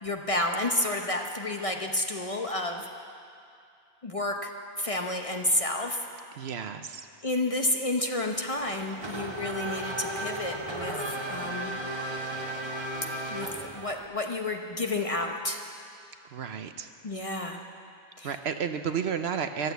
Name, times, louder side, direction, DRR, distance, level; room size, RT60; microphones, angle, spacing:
voice 1, 0.0-2.9 4.0-4.5 4.8-6.1 7.2-11.7 13.3-15.6 17.0-17.6 18.2-18.4, left 2 dB, 30° left, 3 dB, 0.8 m, -30 dB
voice 2, 6.4-7.0 16.3-16.9 18.2-19.7, right 7 dB, 65° right, 8 dB, 0.9 m, -32 dB
Race car auto racing / Accelerating revving vroom, 8.6-14.1, right 1 dB, 25° right, 1.2 m, -35 dB
14.5 x 12.0 x 8.1 m, 2.4 s
omnidirectional pair, 1.2 m